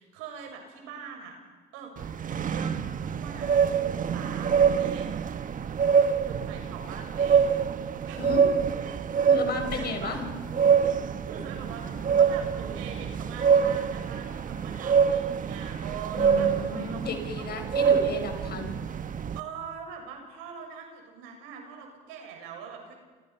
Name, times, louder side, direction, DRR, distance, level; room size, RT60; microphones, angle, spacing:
voice 1, 0.0-1.3 1.7-1.9 2.2-5.7 6.2-7.5 8.0-8.4 9.7-10.2 11.3-17.4 17.8-17.9 19.3-23.0, right 6 dB, 80° right, 3 dB, 6.8 m, -43 dB
sound 1, 2.0-19.4, right 7 dB, 40° right, 1.3 m, -26 dB
voice 2, 9.3-10.3 16.2-18.8, left 4 dB, 50° left, 5 dB, 5.6 m, -33 dB
29.5 x 27.0 x 5.9 m, 1.5 s
supercardioid pair, 90°, 21 cm